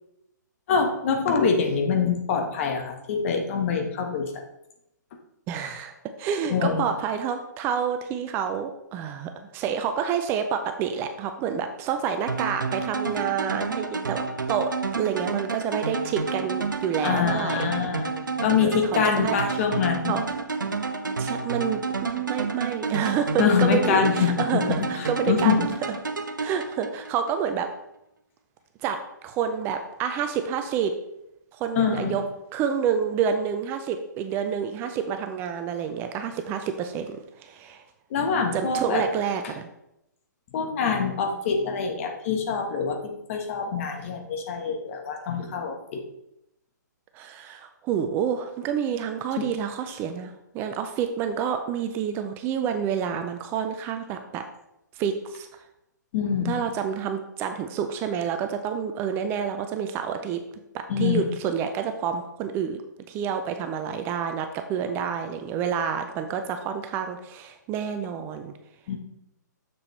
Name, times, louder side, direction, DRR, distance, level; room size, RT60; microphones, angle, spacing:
voice 1, 0.7-4.3 6.5-6.9 17.0-18.1 18.4-20.2 23.4-24.6 25.0-25.7 31.8-32.2 38.1-39.0 40.5-46.0 49.4-49.5 56.1-56.6 60.9-61.2 68.9-69.0, left 6 dB, 40° left, 4 dB, 1.3 m, -25 dB
voice 2, 5.5-5.9 6.2-17.6 18.6-19.4 20.1-20.2 21.2-25.7 26.4-27.7 28.8-29.0 29.2-30.9 31.5-32.2 32.5-37.8 38.5-39.7 47.1-54.4 54.9-55.5 56.4-60.4 60.7-62.8 63.1-68.5, right 7 dB, 20° right, 7 dB, 0.5 m, -28 dB
sound 1, 12.3-27.3, right 4 dB, 85° right, 0.7 m, -30 dB
7.0 x 6.8 x 3.2 m, 0.85 s
figure-of-eight pair, 135°, 10 cm